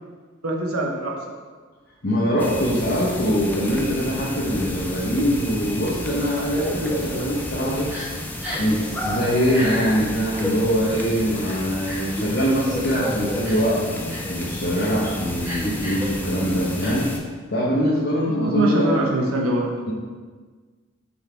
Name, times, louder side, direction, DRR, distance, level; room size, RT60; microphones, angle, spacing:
voice 1, 0.4-1.1 18.2-19.7, right 1 dB, 85° right, 0 dB, 1.0 m, -23 dB
voice 2, 2.0-7.9 8.6-17.1 17.5-19.1 19.9-20.0, equal, 50° left, -7 dB, 0.9 m, -23 dB
sound 1, 2.4-17.2, left 1 dB, 10° left, 0.4 m, -31 dB
Crying sobbing, 7.9-8.1 8.4-8.7 9.5-9.7 10.3-10.5 11.4-12.1 12.7-12.8 13.4-13.7 14.1-14.3 14.7-14.9 15.4-16.1 16.8-16.9, left 1 dB, 10° right, 1.7 m, -33 dB
5.8 x 5.5 x 3.4 m, 1.4 s
head